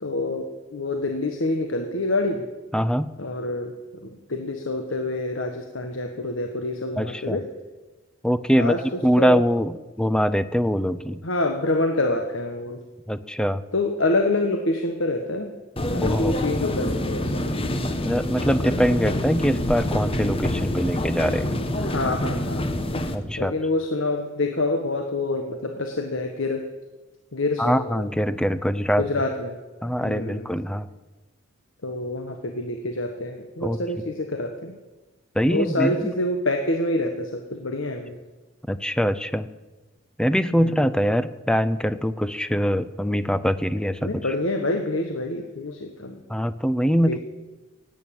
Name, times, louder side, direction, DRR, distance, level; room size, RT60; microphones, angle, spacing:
voice 1, 0.0-2.5 3.2-3.7 4.0-7.5 8.5-8.8 9.2-9.4 11.2-12.8 13.7-15.5 15.9-17.4 21.7-22.7 23.4-26.7 27.3-28.1 29.0-29.6 30.0-30.5 31.8-34.7 35.5-38.2 40.5-40.9 44.0-46.2 47.1-47.2, left 2 dB, 80° left, 4 dB, 1.4 m, -27 dB
voice 2, 2.7-3.1 7.0-7.4 8.2-11.2 13.1-13.6 16.0-16.3 18.0-21.5 23.1-23.5 27.6-29.1 29.8-30.9 33.6-33.8 35.4-36.1 38.7-39.5 40.2-44.1 46.3-47.2, equal, 5° left, 13 dB, 0.6 m, -23 dB
sound 1, 15.8-23.2, left 1 dB, 30° left, 1.3 m, -26 dB
17.0 x 9.3 x 8.7 m, 1.2 s
head